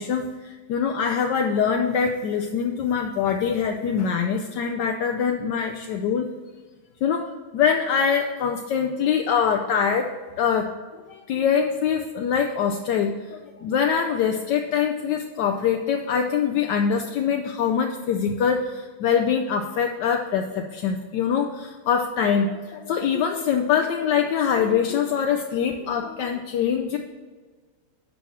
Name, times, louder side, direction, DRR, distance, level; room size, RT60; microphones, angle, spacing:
voice 1, 0.0-6.3 7.0-10.1 10.4-10.7 11.1-27.0, left 7 dB, 70° left, 4 dB, 1.0 m, -24 dB
11.0 x 4.2 x 7.2 m, 1.4 s
omnidirectional pair, 2.4 m